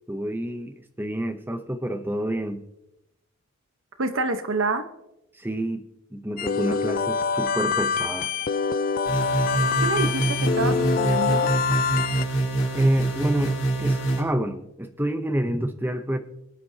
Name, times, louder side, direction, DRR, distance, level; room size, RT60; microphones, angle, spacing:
voice 1, 0.1-2.6 5.4-5.8 6.1-8.3 12.7-16.2, right 1 dB, 10° right, 8 dB, 0.8 m, -28 dB
voice 2, 4.0-4.9 9.8-11.5, right 3 dB, 65° right, 9 dB, 1.1 m, -27 dB
sound 1, 6.4-12.2, left 5 dB, 40° left, 0.4 m, -25 dB
sound 2, 9.1-14.2, right 2 dB, 60° left, 2.8 m, -25 dB
22.5 x 9.4 x 2.8 m, 0.88 s
head